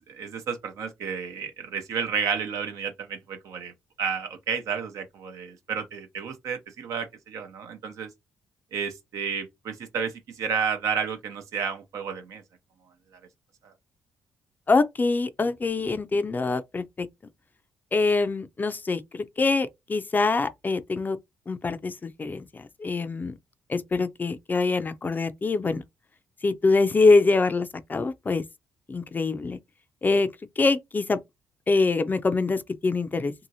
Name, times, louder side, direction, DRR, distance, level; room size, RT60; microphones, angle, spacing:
voice 1, 0.0-3.7 4.0-8.1 8.7-12.4 13.6-13.7, right 7 dB, 70° right, 0.6 m, -31 dB
voice 2, 14.7-17.1 17.9-21.2 21.5-23.3 23.7-25.8 26.4-28.4 28.9-29.6 30.0-30.3 30.6-31.2 31.7-33.3, left 3 dB, 30° left, 0.4 m, -24 dB
2.7 x 2.6 x 2.7 m
hypercardioid pair, 50°, 6 cm